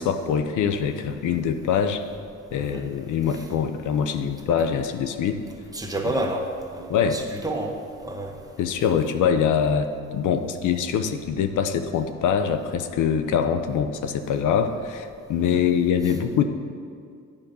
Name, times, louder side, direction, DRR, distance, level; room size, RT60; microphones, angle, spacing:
voice 1, 0.0-2.0 2.5-5.4 6.9-7.2 8.6-16.4, left 7 dB, 80° left, 8 dB, 0.7 m, -24 dB
voice 2, 5.7-6.4 6.7-7.8 8.0-8.3 15.5-15.6, right 1 dB, 10° right, 1 dB, 1.3 m, -29 dB
9.7 x 5.2 x 6.8 m, 2.3 s
cardioid pair, 90°, 30 cm